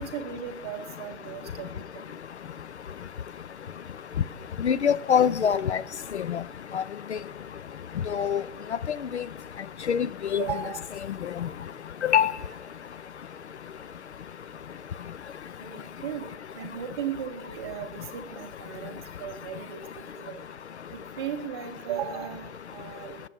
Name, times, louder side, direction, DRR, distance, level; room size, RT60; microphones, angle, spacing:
voice 1, 0.0-2.2 10.4-10.8 15.6-16.3 16.5-20.4 20.9-23.2, right 8 dB, 20° right, 0.7 m, -36 dB
voice 2, 4.6-5.8 6.1-6.4 6.7-6.8 8.1-8.4 9.1-9.2 9.9-10.1 10.3-10.4 12.0-12.3, left 8 dB, 60° left, 0.5 m, -23 dB
18.5 x 7.5 x 3.5 m
figure-of-eight pair, 140°, 39 cm